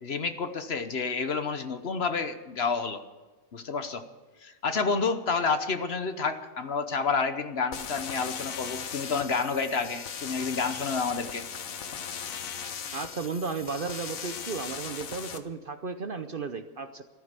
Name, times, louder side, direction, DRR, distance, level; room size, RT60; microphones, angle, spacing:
voice 1, 0.0-3.0 3.5-4.0 4.4-11.4, left 4 dB, 50° left, 9 dB, 1.2 m, -29 dB
sound 1, 7.7-15.4, left 7 dB, 80° left, 1.5 m, -38 dB
voice 2, 12.9-17.0, right 4 dB, 50° right, 9 dB, 0.8 m, -34 dB
14.5 x 14.0 x 6.7 m, 1.3 s
omnidirectional pair, 1.4 m